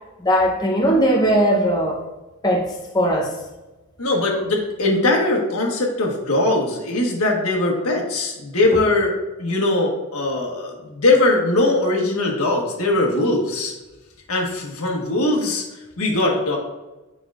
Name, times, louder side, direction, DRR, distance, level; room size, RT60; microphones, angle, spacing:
voice 1, 0.2-2.0 2.4-3.4 4.3-4.4, equal, 20° left, -3 dB, 0.8 m, -19 dB
voice 2, 4.0-9.1 9.4-13.7 14.3-15.6 16.0-16.6, left 2 dB, 75° left, -1 dB, 1.4 m, -20 dB
9.7 x 4.8 x 2.5 m, 1.1 s
head